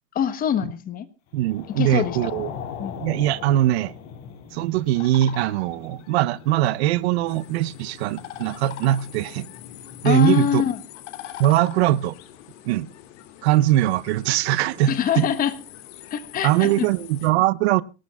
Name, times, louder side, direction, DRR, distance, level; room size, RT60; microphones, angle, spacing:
voice 1, 0.1-1.1 1.8-2.2 2.8-2.9 10.0-10.8 14.9-15.6 16.1-16.9, left 9 dB, 25° left, 1.1 m, -23 dB
sound 1, 1.3-10.1, left 7 dB, 40° left, 3.7 m, -40 dB
voice 2, 1.3-2.5 3.0-3.9 4.5-9.5 10.0-10.6 11.4-12.1 12.6-12.9 13.4-15.3 16.4-17.8, right 14 dB, 60° right, 0.7 m, -21 dB
sound 2, 5.0-16.6, left 11 dB, 80° left, 2.9 m, -45 dB
sound 3, 7.3-17.3, left 13 dB, 60° left, 2.3 m, -47 dB
23.5 x 18.5 x 2.3 m
supercardioid pair, 150°, 36 cm